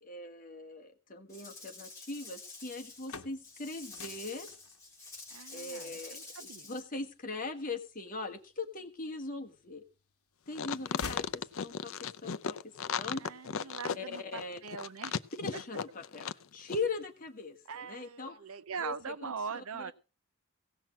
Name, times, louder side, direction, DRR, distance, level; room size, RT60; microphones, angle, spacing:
voice 1, 0.0-4.5 5.5-9.8 10.5-12.6 12.9-13.2 13.9-14.6 15.4-18.3 18.8-18.9 19.2-19.9, left 3 dB, 40° left, 3 dB, 1.5 m, -40 dB
Rattle / Rattle (instrument), 1.3-6.8, left 3 dB, 15° left, 3.3 m, -48 dB
sound 1, 2.8-8.7 9.3-10.1 10.4-12.0, left 5 dB, 80° left, 1.1 m, -48 dB
voice 2, 5.3-6.7 13.2-15.1 15.5-15.6 17.7-19.9, right 5 dB, 75° right, 15 dB, 0.7 m, -42 dB
sound 2, 10.5-16.4 16.7-16.8, left 6 dB, 65° left, 0.5 m, -36 dB
16.5 x 6.0 x 7.3 m, 0.35 s
head